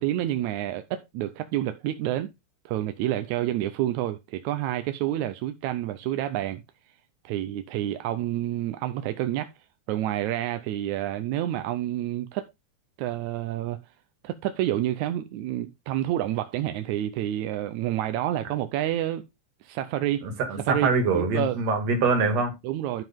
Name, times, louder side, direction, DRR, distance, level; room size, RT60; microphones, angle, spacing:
voice 1, 0.0-2.3 2.6-6.6 7.2-9.5 9.9-12.5 13.0-13.8 14.2-19.2 19.6-20.3 20.7-21.6 22.6-23.0, right 13 dB, 75° right, 1.8 m, -28 dB
voice 2, 20.2-22.5, right 4 dB, 55° right, 3.0 m, -24 dB
12.0 x 5.6 x 3.5 m
omnidirectional pair, 3.9 m